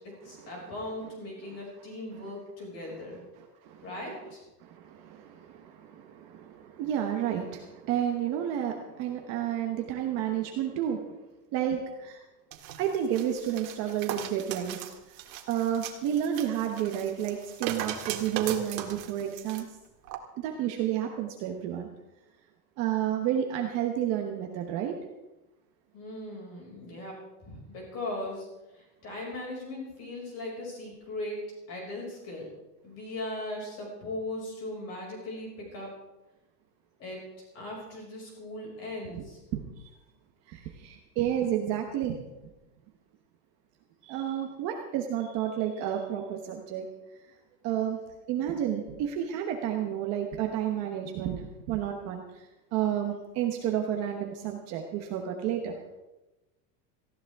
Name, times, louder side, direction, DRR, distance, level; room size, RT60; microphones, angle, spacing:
voice 1, 0.2-3.2 3.8-4.4 25.9-28.5 28.7-31.4 31.7-32.5 32.8-35.9 37.0-37.2 37.5-39.4, left 1 dB, 30° left, -1 dB, 5.7 m, -38 dB
voice 2, 4.6-11.1 11.5-12.2 12.8-14.8 15.5-19.7 20.4-21.9 22.8-25.0 39.1-39.2 39.5-39.6 40.5-42.2 44.0-46.8 47.6-48.0 48.3-52.2 52.7-55.8, right 10 dB, 30° right, 3 dB, 1.0 m, -31 dB
sound 1, 12.5-19.6 20.1-20.2, right 10 dB, 85° right, 1.9 m, -38 dB
18.5 x 15.5 x 3.5 m, 0.99 s
supercardioid pair, 180°, 50 cm